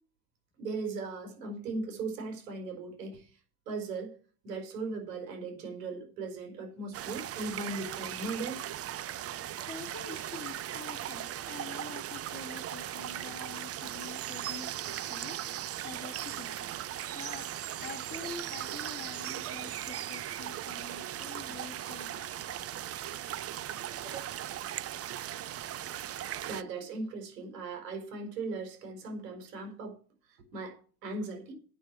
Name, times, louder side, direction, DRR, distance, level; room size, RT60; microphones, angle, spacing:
voice 1, 0.6-3.4 3.7-4.2 4.4-8.6 24.0-24.3 26.5-30.0 30.3-31.5, right 3 dB, 85° right, 4.7 m, -38 dB
sound 1, 6.9-26.6, right 12 dB, 30° right, 0.6 m, -38 dB
voice 2, 9.7-16.7 17.1-17.5 17.8-22.4 24.0-24.3 25.2-25.9, left 5 dB, 20° left, 3.0 m, -47 dB
8.9 x 6.5 x 7.5 m
hypercardioid pair, 95°, 48 cm